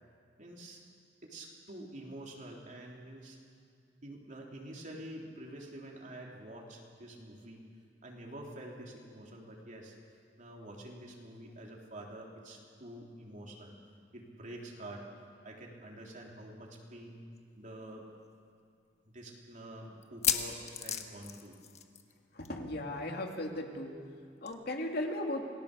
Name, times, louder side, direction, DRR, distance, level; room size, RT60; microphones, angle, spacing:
voice 1, 0.4-0.8 1.2-3.4 4.0-7.6 8.0-9.9 10.4-13.7 14.1-15.1 15.4-17.2 17.6-18.1 19.1-21.6, right 1 dB, 45° right, -1 dB, 3.5 m, -47 dB
sound 1, 17.4-17.5 17.8-17.9 18.5-18.6 20.0-22.2 22.4-22.6 22.9-23.0 24.5-24.6, left 8 dB, 40° left, 1.3 m, -34 dB
voice 2, 22.3-24.0 24.4-25.5, left 1 dB, 60° left, 2 dB, 2.4 m, -36 dB
28.0 x 19.0 x 6.8 m, 2.2 s
head